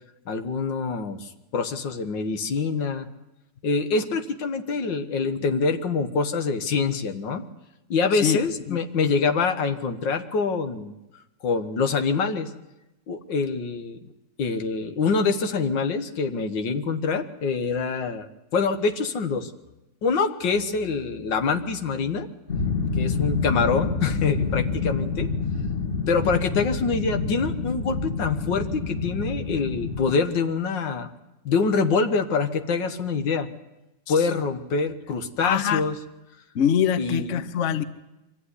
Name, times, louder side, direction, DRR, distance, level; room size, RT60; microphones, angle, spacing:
voice 1, 0.3-3.1 3.6-7.4 7.9-10.9 11.4-12.5 13.1-14.0 14.4-19.5 20.0-22.3 23.0-25.3 26.1-31.1 31.5-33.5 34.1-36.0 37.0-37.4, left 4 dB, 75° left, 8 dB, 2.0 m, -25 dB
sound 1, 22.5-30.1, left 4 dB, 30° left, 2.1 m, -27 dB
voice 2, 35.4-35.8 36.5-37.8, left 9 dB, 50° left, 14 dB, 1.0 m, -24 dB
24.0 x 14.0 x 9.8 m, 0.97 s
omnidirectional pair, 2.0 m